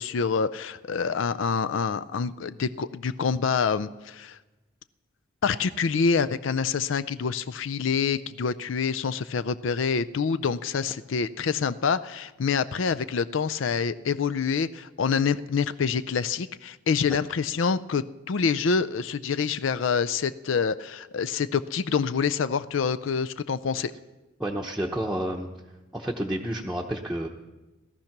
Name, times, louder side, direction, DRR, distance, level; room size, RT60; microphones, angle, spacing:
voice 1, 0.0-4.4 5.4-23.9, left 5 dB, 70° left, 14 dB, 0.5 m, -26 dB
voice 2, 24.4-25.5 25.9-27.3, right 1 dB, ahead, -2 dB, 0.8 m, -30 dB
17.5 x 13.5 x 5.9 m, 1.1 s
head